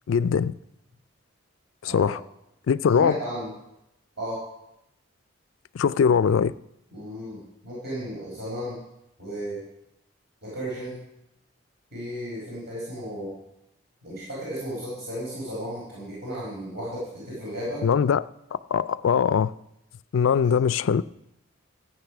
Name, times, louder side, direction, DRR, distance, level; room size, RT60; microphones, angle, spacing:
voice 1, 0.1-0.5 1.8-2.2 2.7-3.2 5.7-6.5 17.8-18.3 18.7-19.5 20.1-21.0, left 7 dB, 75° left, 0.4 m, -21 dB
voice 2, 1.8-2.1 3.0-3.5 4.2-4.4 6.9-8.8 9.2-9.6 10.4-11.0 11.9-13.3 14.0-17.8 20.4-20.5, equal, 55° right, 4.9 m, -34 dB
13.5 x 8.5 x 5.9 m
head